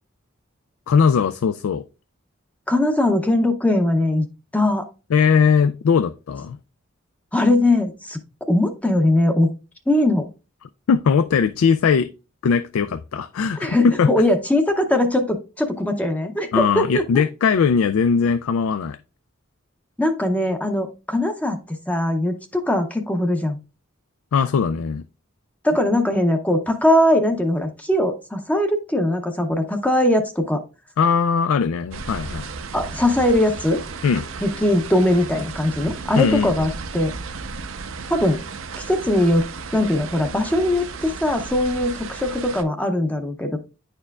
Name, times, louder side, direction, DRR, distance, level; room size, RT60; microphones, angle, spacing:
voice 1, 0.9-1.8 5.1-6.6 10.9-12.1 12.4-14.1 16.5-19.0 24.3-25.0 31.0-32.5 34.0-34.3 36.2-36.5, left 6 dB, 85° left, 0.3 m, -19 dB
voice 2, 2.7-4.3 4.5-4.9 7.3-8.2 8.5-9.5 9.9-10.3 13.6-17.0 20.0-23.6 25.6-30.6 32.7-33.8 34.4-37.2 38.1-38.4 38.8-43.6, left 1 dB, 5° left, 0.6 m, -20 dB
sound 1, 31.9-42.6, right 4 dB, 75° right, 0.6 m, -34 dB
9.7 x 4.4 x 2.3 m
head